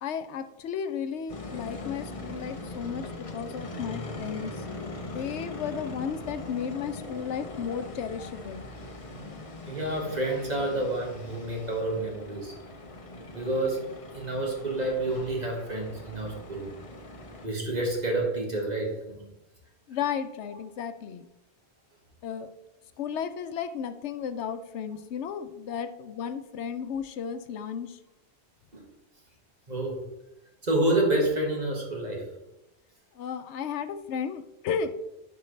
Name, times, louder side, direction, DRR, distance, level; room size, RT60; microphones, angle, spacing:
voice 1, 0.0-3.0 3.3-4.6 5.1-8.7 19.9-21.3 22.2-22.5 23.0-28.0 33.2-34.9, left 7 dB, 85° left, 10 dB, 0.9 m, -34 dB
sound 1, 1.3-17.5, left 2 dB, 35° left, 0.8 m, -41 dB
voice 2, 9.7-12.5 13.3-13.8 14.1-16.7 17.4-19.3 28.7-28.8 29.7-30.0 30.6-32.2, right 2 dB, 40° right, 0 dB, 1.7 m, -29 dB
10.0 x 4.7 x 3.2 m, 0.91 s
omnidirectional pair, 1.1 m